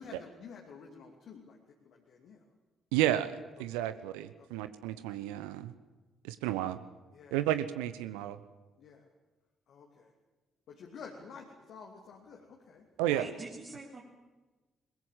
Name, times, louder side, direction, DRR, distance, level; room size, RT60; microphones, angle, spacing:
voice 1, 0.0-2.5 3.7-3.8 4.4-4.6 7.1-7.4 8.8-9.1 9.7-10.1 10.7-12.9, left 5 dB, 55° left, 1 dB, 2.6 m, -50 dB
voice 2, 2.9-5.7 6.2-6.8 7.3-8.4 13.0-13.2, right 13 dB, 70° right, 12 dB, 0.9 m, -32 dB
voice 3, 13.1-14.0, right 3 dB, 35° right, -3 dB, 3.7 m, -44 dB
22.5 x 21.5 x 7.4 m, 1.2 s
figure-of-eight pair, 40°, 0 cm